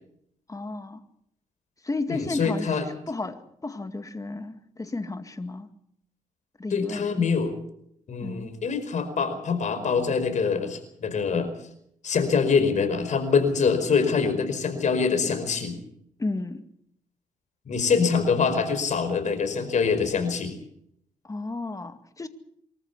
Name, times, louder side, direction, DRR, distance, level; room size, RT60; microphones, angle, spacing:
voice 1, 0.5-1.0 1.8-2.8 3.1-5.7 6.6-7.2 8.2-8.5 16.2-16.6 21.2-22.3, left 2 dB, 25° left, 9 dB, 2.2 m, -33 dB
voice 2, 2.1-2.8 6.7-7.5 8.1-11.5 12.0-15.8 17.7-20.5, left 5 dB, 60° left, 7 dB, 5.1 m, -24 dB
24.5 x 14.0 x 8.4 m, 0.74 s
cardioid pair, 75°, 14 cm